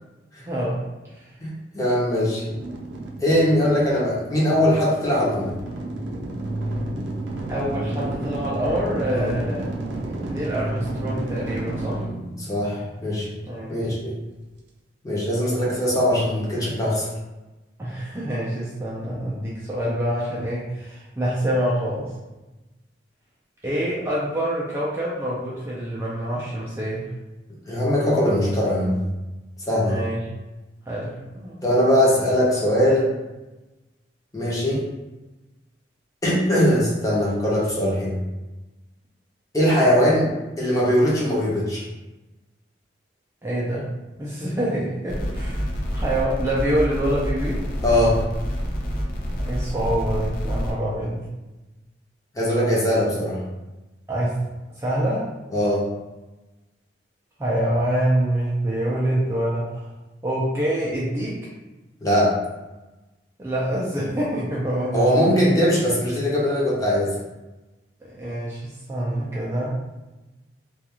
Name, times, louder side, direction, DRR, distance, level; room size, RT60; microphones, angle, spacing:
voice 1, 0.4-0.8 1.1-1.3 7.5-9.6 10.2-12.1 13.4-13.9 15.7-15.8 17.8-22.1 23.6-27.1 29.8-30.2 30.9-31.6 43.4-43.9 44.2-45.6 45.9-47.6 49.5-51.2 54.1-54.4 54.8-55.3 57.4-59.8 60.2-61.5 63.4-65.5 68.1-69.8, right 1 dB, 15° right, -7 dB, 0.4 m, -26 dB
voice 2, 1.4-2.4 3.2-5.5 9.1-9.3 12.4-13.3 13.7-14.2 15.0-17.1 27.7-29.0 29.7-30.0 31.6-33.1 34.3-34.8 36.2-38.2 39.5-40.3 40.6-41.8 47.8-48.2 52.3-53.4 55.5-55.9 62.0-62.4 64.9-67.2, equal, 20° left, -5 dB, 0.7 m, -21 dB
sound 1, 2.5-13.4, right 1 dB, 90° right, 0.4 m, -31 dB
sound 2, 45.1-50.7, equal, 55° left, 0.6 m, -27 dB
2.4 x 2.4 x 2.8 m, 1.1 s
head